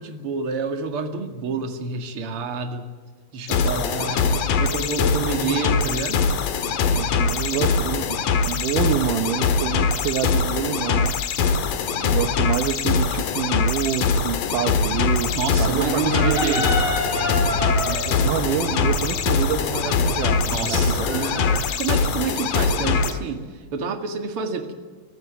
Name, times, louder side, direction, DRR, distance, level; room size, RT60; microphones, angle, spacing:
voice 1, 0.0-2.9 3.3-6.2 7.1-7.2 15.3-16.7 20.5-21.3 21.8-24.7, right 5 dB, 45° right, 5 dB, 2.6 m, -28 dB
sound 1, 3.5-23.1, left 5 dB, 70° left, 3.2 m, -22 dB
voice 2, 6.9-8.2 8.5-11.2 12.0-15.3 15.6-16.7 17.9-21.4, right 10 dB, 70° right, 7 dB, 2.4 m, -27 dB
Chicken rooster, 14.9-21.6, left 2 dB, 45° left, 4.7 m, -29 dB
25.0 x 16.0 x 9.3 m, 1.5 s
omnidirectional pair, 4.2 m